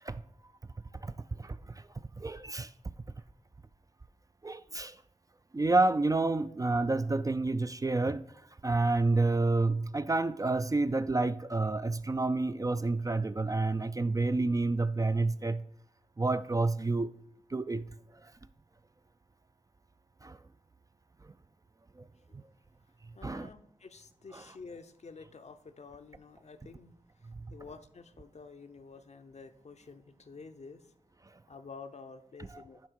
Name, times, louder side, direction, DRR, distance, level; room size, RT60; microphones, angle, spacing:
voice 1, 1.4-1.9 2.2-2.7 4.4-5.0 5.5-8.3 8.6-15.6 16.2-17.1 17.5-17.9 18.2-18.3 20.2-20.4 21.2-21.3 22.0-22.1 22.3-22.4 23.2-23.5 24.3-24.4 27.4-27.5, right 3 dB, 25° right, 0.3 m, -29 dB
voice 2, 23.1-30.9 31.5-32.8, left 4 dB, 55° left, 0.6 m, -50 dB
10.5 x 3.5 x 4.6 m
cardioid pair, 45°, 13 cm